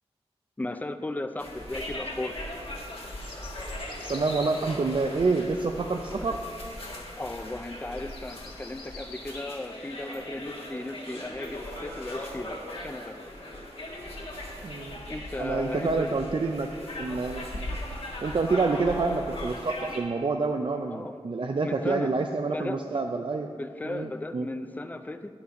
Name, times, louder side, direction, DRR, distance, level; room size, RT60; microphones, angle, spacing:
voice 1, 0.6-2.5 7.2-13.2 15.1-16.2 20.9-21.1 21.6-22.1 22.5-22.8 23.5-25.3, left 2 dB, 15° left, 9 dB, 0.4 m, -36 dB
sound 1, 1.4-20.0, left 1 dB, 65° left, 1.6 m, -39 dB
sound 2, 1.4-9.5, left 1 dB, 50° left, 1.7 m, -47 dB
voice 2, 4.1-6.4 14.6-15.0 15.4-16.7 17.0-17.5 18.2-23.5 23.8-24.5, right 3 dB, 55° right, 4 dB, 0.4 m, -28 dB
9.9 x 5.8 x 5.1 m, 2.2 s
wide cardioid pair, 70°, 11 cm